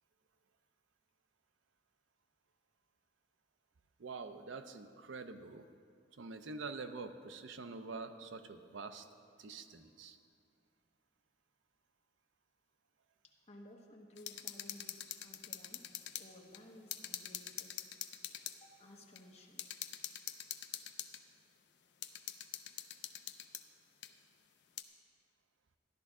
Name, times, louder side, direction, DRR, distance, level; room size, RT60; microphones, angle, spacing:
voice 1, 4.0-5.7 6.2-9.1 9.4-10.2, right 4 dB, 85° right, 9 dB, 0.6 m, -46 dB
voice 2, 13.2-17.9 18.5-19.6, left 1 dB, 35° left, 0 dB, 1.1 m, -57 dB
sound 1, 14.2-16.3 16.5-16.6 16.9-18.6 19.2-19.3 19.6-21.2 22.0-23.6 24.0-24.1 24.8-24.9, left 11 dB, 65° left, 0.5 m, -44 dB
13.0 x 11.0 x 3.6 m, 2.3 s
head